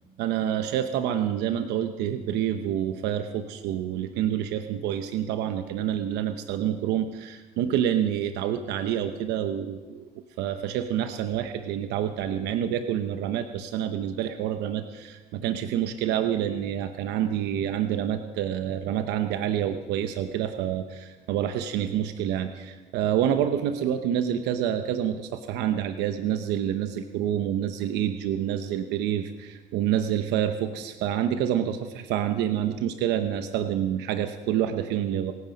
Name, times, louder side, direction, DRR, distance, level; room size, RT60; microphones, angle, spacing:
voice 1, 0.2-10.1 10.4-35.3, right 10 dB, 90° right, 8 dB, 0.9 m, -27 dB
26.5 x 9.6 x 5.3 m, 1.3 s
cardioid pair, 110°, 17 cm